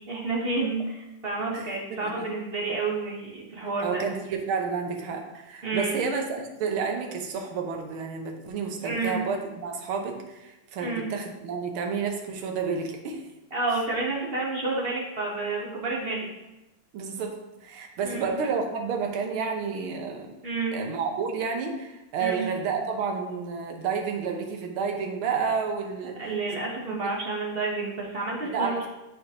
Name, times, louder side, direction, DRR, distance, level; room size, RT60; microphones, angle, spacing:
voice 1, 0.1-4.0 5.6-6.0 8.8-9.2 10.8-11.0 13.5-16.3 18.0-18.3 20.4-20.8 22.2-22.4 26.2-28.9, right 3 dB, 40° right, -3 dB, 0.9 m, -30 dB
voice 2, 3.8-13.2 16.9-17.4 17.6-20.3 20.7-26.2 28.5-28.7, right 5 dB, 80° right, 3 dB, 1.7 m, -30 dB
10.5 x 4.1 x 2.8 m, 0.99 s
omnidirectional pair, 2.3 m